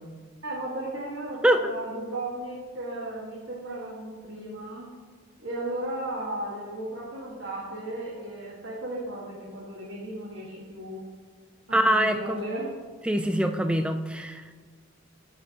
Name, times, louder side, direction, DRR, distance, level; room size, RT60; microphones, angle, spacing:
voice 1, 0.4-4.9 5.4-11.0 11.7-12.7, right 1 dB, 55° right, -6 dB, 1.6 m, -35 dB
voice 2, 11.7-12.4 13.0-14.5, right 1 dB, 5° right, 8 dB, 0.3 m, -24 dB
15.5 x 5.7 x 2.9 m, 1.5 s
head